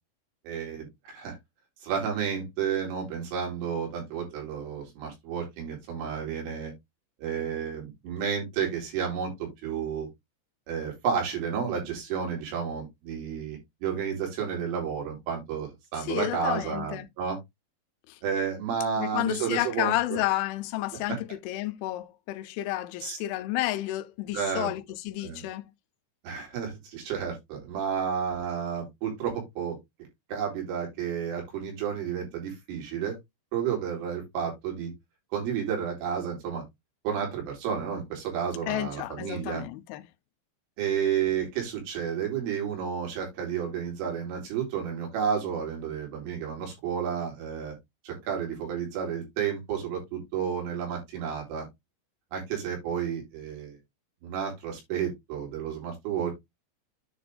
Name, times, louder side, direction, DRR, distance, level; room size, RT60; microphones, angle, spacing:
voice 1, 0.5-1.4 1.8-6.7 7.2-10.1 10.7-17.4 18.2-20.2 21.1-21.2 23.0-23.2 24.3-24.7 25.2-25.5 26.2-29.8 30.3-33.2 33.5-34.9 35.3-36.6 37.0-39.6 40.8-47.8 48.0-51.7 52.3-53.8 54.2-56.3, right 7 dB, 90° right, 6.0 m, -31 dB
voice 2, 16.1-17.1 19.0-21.2 21.5-25.7 38.7-40.0, left 16 dB, 85° left, 3.1 m, -31 dB
10.0 x 3.9 x 3.3 m
omnidirectional pair, 5.5 m